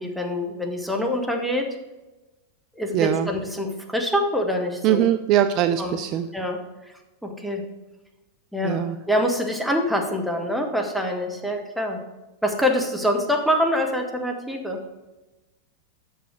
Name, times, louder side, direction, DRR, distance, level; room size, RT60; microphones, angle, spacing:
voice 1, 0.0-1.7 2.8-5.0 5.8-6.0 6.3-6.9 7.2-7.6 8.5-12.0 12.4-14.8, equal, ahead, 1 dB, 1.2 m, -25 dB
voice 2, 2.9-3.3 4.8-6.3 8.6-9.0, right 11 dB, 40° right, 10 dB, 0.3 m, -21 dB
6.1 x 5.5 x 6.3 m, 1.1 s
figure-of-eight pair, 90°, 0 cm